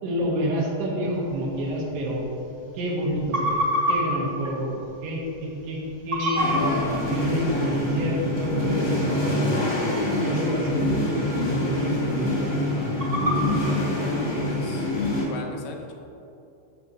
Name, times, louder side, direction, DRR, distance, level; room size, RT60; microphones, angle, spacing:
voice 1, 0.0-2.2 2.7-3.6 3.9-6.6 7.0-9.7 10.2-11.3 11.5-12.9, equal, 85° right, -3 dB, 3.6 m, -28 dB
Toad Distress, 1.1-14.6, equal, 15° right, 0.8 m, -32 dB
Bell, 6.2-8.0, right 3 dB, 70° right, 1.7 m, -41 dB
sound 1, 6.3-15.3, left 1 dB, 35° left, 1.1 m, -25 dB
voice 2, 13.3-14.9 15.3-15.9, left 5 dB, 85° left, 2 dB, 2.9 m, -39 dB
13.0 x 6.7 x 3.2 m, 2.7 s
omnidirectional pair, 4.6 m